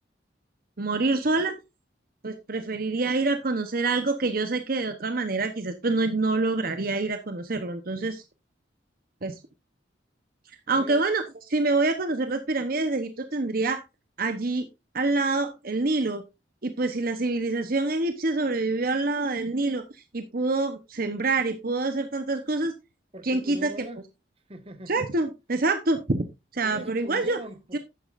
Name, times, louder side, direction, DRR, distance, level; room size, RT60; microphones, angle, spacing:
voice 1, 0.8-1.5 2.2-8.2 9.2-9.4 10.7-13.8 14.2-14.7 14.9-16.2 16.6-22.7 23.2-23.7 24.9-26.2 26.5-27.4 27.7-27.8, right 3 dB, 55° right, 1.0 m, -26 dB
voice 2, 10.7-11.1 23.1-24.1 24.5-25.1 26.6-27.8, right 1 dB, 30° right, 1.5 m, -40 dB
11.5 x 9.5 x 2.6 m
head